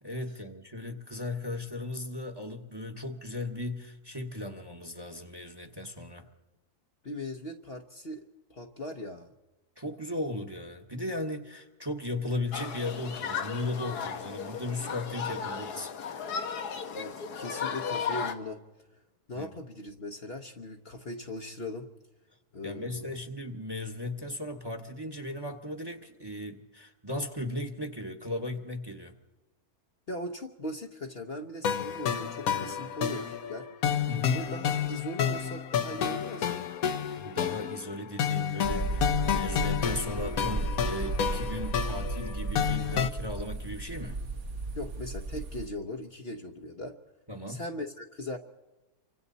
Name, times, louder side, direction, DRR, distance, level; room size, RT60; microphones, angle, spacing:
voice 1, 0.0-6.3 9.8-15.9 19.3-19.5 22.6-29.1 34.1-34.5 37.2-44.2 47.3-47.6, left 1 dB, 15° right, 6 dB, 1.3 m, -36 dB
voice 2, 7.0-8.2 8.5-9.3 16.9-18.6 19.3-21.9 22.5-23.2 30.1-33.7 34.3-36.6 44.7-47.0 47.5-48.4, left 1 dB, 45° left, 4 dB, 1.1 m, -39 dB
Human group actions, 12.5-18.3, left 6 dB, 90° left, 1.7 m, -35 dB
sound 1, 31.6-43.1, left 8 dB, 65° left, 1.4 m, -30 dB
sound 2, 38.6-45.7, right 2 dB, 50° right, 1.7 m, -34 dB
28.0 x 24.5 x 4.1 m, 1.1 s
omnidirectional pair, 1.6 m